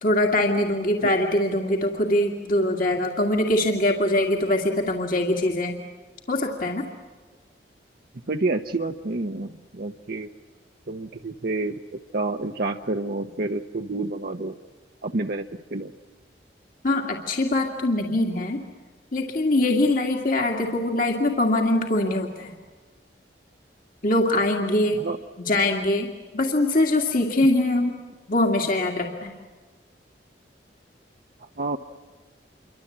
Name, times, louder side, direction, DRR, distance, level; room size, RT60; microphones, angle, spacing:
voice 1, 0.0-5.8 6.3-6.9 16.8-18.6 19.1-22.5 24.0-25.0 25.4-26.1 26.3-27.9 28.3-29.3, left 1 dB, 50° left, 1 dB, 2.3 m, -23 dB
voice 2, 8.3-10.3 10.9-11.8 12.1-14.6 15.0-15.9 25.0-25.2 31.4-31.8, right 2 dB, 60° right, 4 dB, 0.9 m, -29 dB
28.0 x 24.5 x 8.6 m, 1.4 s
head